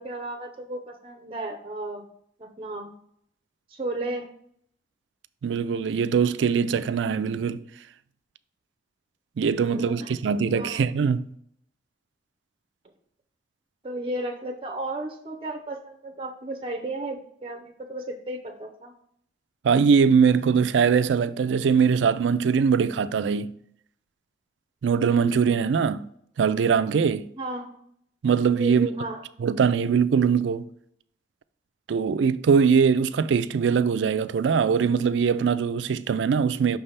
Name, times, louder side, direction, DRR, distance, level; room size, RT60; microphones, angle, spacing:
voice 1, 0.0-2.1 2.4-2.9 3.7-4.3 9.7-10.1 10.5-10.8 13.8-18.9 27.4-27.8 28.6-29.2, right 2 dB, 30° right, 0.6 m, -34 dB
voice 2, 5.4-7.6 9.4-11.3 19.6-23.5 24.8-26.0 26.4-27.3 28.2-28.9 29.4-30.7 31.9-36.8, right 6 dB, 85° right, 0.4 m, -22 dB
5.9 x 3.3 x 5.5 m
head